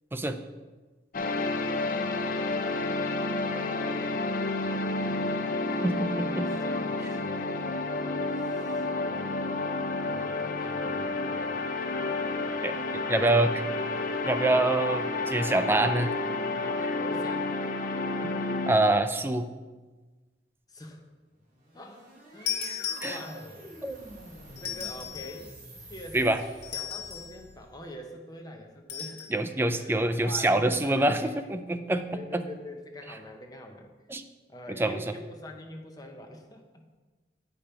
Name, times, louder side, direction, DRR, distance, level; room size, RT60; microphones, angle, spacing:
sound 1, 1.1-18.7, left 2 dB, 50° left, 0.5 m, -30 dB
voice 1, 1.2-1.5 3.6-4.6 5.0-9.4 10.1-11.6 13.2-13.8 16.6-17.5 20.7-21.0 21.7-22.0 22.3-23.6 24.6-25.5 25.8-26.4 26.7-29.3 29.7-31.3 32.1-33.9 34.5-36.8, left 1 dB, 20° left, 2 dB, 0.9 m, -45 dB
voice 2, 5.8-6.5 12.6-13.6 14.2-16.2 18.2-18.3 18.7-19.5 23.0-23.2 23.8-24.0 26.1-26.4 29.3-32.4 34.1-34.2 34.8-35.0, right 2 dB, 15° right, 9 dB, 0.3 m, -26 dB
sound 2, 21.4-27.8, right 1 dB, 45° right, 2.3 m, -48 dB
sound 3, 22.5-23.6 24.6-25.4 26.6-27.4 28.9-29.3, left 8 dB, 65° left, 1.5 m, -35 dB
8.7 x 5.2 x 4.4 m, 1.3 s
head